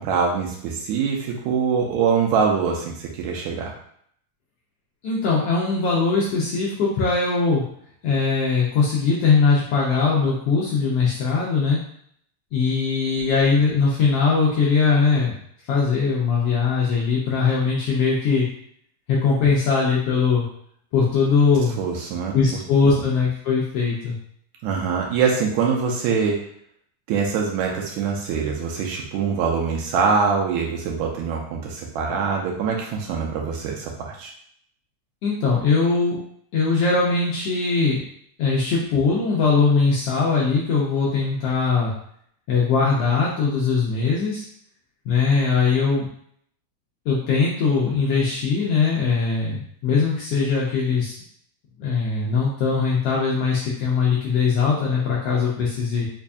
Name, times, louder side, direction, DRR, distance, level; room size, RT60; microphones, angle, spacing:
voice 1, 0.0-3.7 21.8-22.3 24.6-26.4 27.1-34.3, right 6 dB, 85° right, 0 dB, 1.9 m, -23 dB
voice 2, 5.0-7.6 8.0-11.8 12.5-15.3 15.7-18.5 19.1-20.4 20.9-21.8 22.3-24.2 35.2-36.2 36.5-38.0 38.4-41.9 42.5-44.4 45.1-46.1 47.1-51.1 51.8-56.1, left 4 dB, 75° left, -5 dB, 1.5 m, -20 dB
4.9 x 2.6 x 2.3 m, 0.65 s
omnidirectional pair, 3.3 m